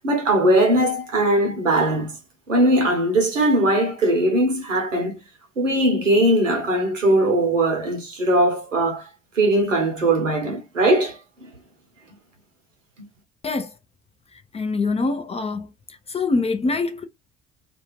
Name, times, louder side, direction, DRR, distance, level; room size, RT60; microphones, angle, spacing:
voice 1, 0.0-2.2 2.5-5.2 5.6-9.1 9.3-11.5, right 1 dB, 90° right, 0.9 m, -20 dB
voice 2, 14.5-15.7 16.1-17.0, left 3 dB, 15° left, 0.4 m, -24 dB
2.5 x 2.4 x 3.0 m
figure-of-eight pair, 50°, 37 cm